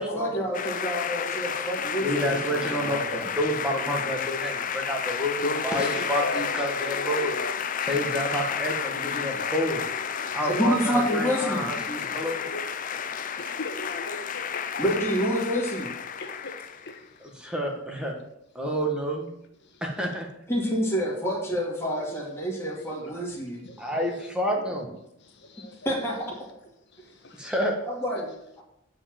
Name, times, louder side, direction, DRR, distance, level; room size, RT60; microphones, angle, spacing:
voice 1, 0.0-3.3 10.4-11.7 14.8-15.9 20.5-23.6 25.8-26.4 27.8-28.6, equal, 10° left, 2.2 m, -28 dB
sound 1, 0.5-17.0, left 7 dB, 40° left, 0.5 m, -31 dB
voice 2, 0.8-2.1 5.4-7.6 7.8-8.0 9.1-9.5 9.7-10.7 12.3-12.6 13.4-14.8 16.2-16.5 16.8-16.9 22.0-22.1 22.7-22.8 23.6-24.3 25.2-25.9 27.2-27.5, left 2 dB, 55° left, 1.3 m, -38 dB
voice 3, 2.0-7.4 7.8-9.8 10.3-12.4 17.2-18.1 18.5-19.3 19.8-20.3 23.8-24.9 27.4-27.8, equal, 5° right, 1.5 m, -29 dB
9.5 x 5.0 x 7.6 m
head